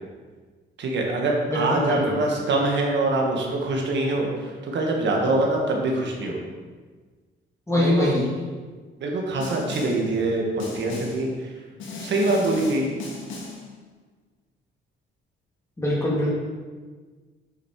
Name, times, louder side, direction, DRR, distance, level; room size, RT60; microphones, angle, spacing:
voice 1, 0.8-6.4 7.7-8.1 9.0-11.5 12.0-12.9, right 2 dB, 65° right, 0 dB, 1.6 m, -24 dB
voice 2, 1.5-2.1 7.7-8.2 15.8-16.3, left 1 dB, 15° left, -6 dB, 2.6 m, -23 dB
Snare drum, 9.4-10.1 10.6-11.3 11.8-13.7, left 3 dB, 75° left, 1.7 m, -36 dB
8.6 x 5.3 x 4.7 m, 1.4 s
cardioid pair, 90°, 20 cm